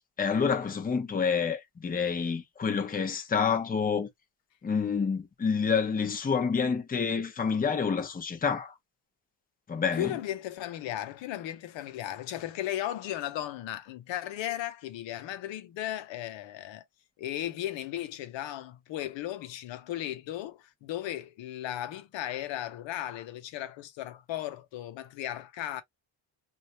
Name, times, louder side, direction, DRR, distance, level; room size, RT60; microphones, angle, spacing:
voice 1, 0.2-4.1 4.6-8.7 9.7-10.1, left 6 dB, 20° left, 0.8 m, -28 dB
voice 2, 9.9-16.8 17.2-25.8, left 12 dB, 75° left, 1.0 m, -36 dB
3.1 x 2.7 x 2.7 m
cardioid pair, 105°, 46 cm